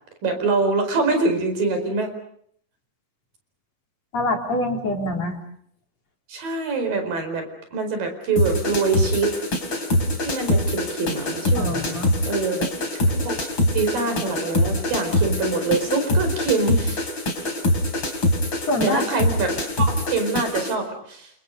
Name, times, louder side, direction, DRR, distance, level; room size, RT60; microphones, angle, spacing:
voice 1, 0.2-2.1 6.3-9.3 10.2-12.0 12.3-12.7 13.3-13.4 13.7-17.1 18.8-21.3, right 3 dB, 85° right, 7 dB, 6.5 m, -24 dB
voice 2, 4.1-5.4 11.5-12.1 18.7-19.0, left 1 dB, 50° left, 1 dB, 4.9 m, -25 dB
sound 1, 8.4-20.7, left 1 dB, 35° left, 4.7 m, -24 dB
29.5 x 28.0 x 5.3 m, 0.65 s
omnidirectional pair, 3.9 m